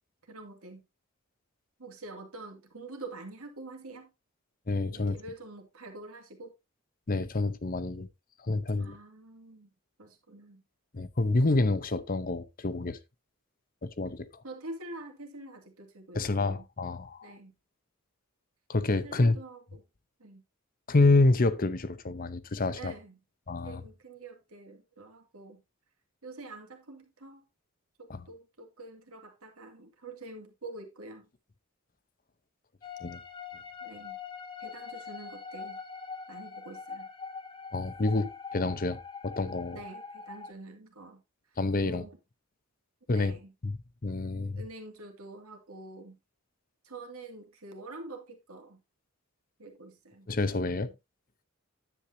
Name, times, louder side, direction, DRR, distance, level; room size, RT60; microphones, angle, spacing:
voice 1, 0.2-0.9 1.8-4.1 4.9-6.5 8.8-9.7 10.0-10.6 14.4-16.7 17.2-17.6 18.9-19.8 20.2-20.4 22.8-23.2 23.6-25.6 26.2-27.4 28.0-31.3 33.8-34.2 34.6-35.8 36.3-37.1 39.7-41.2 41.5-42.2 43.1-43.5 44.6-46.2 46.8-48.8 49.6-50.3 50.7-50.9, right 2 dB, 80° right, 2.4 m, -46 dB
voice 2, 4.7-5.2 7.1-8.1 8.4-8.9 10.9-13.0 13.8-14.3 16.1-17.3 18.7-19.4 20.9-22.9 23.5-23.8 28.1-28.2 33.0-33.2 37.7-39.8 41.6-42.0 43.1-43.3 43.6-43.7 44.0-44.6 50.3-50.9, left 2 dB, 40° left, 0.7 m, -28 dB
sound 1, 32.8-40.5, left 5 dB, 20° left, 1.5 m, -43 dB
9.9 x 8.5 x 2.8 m
head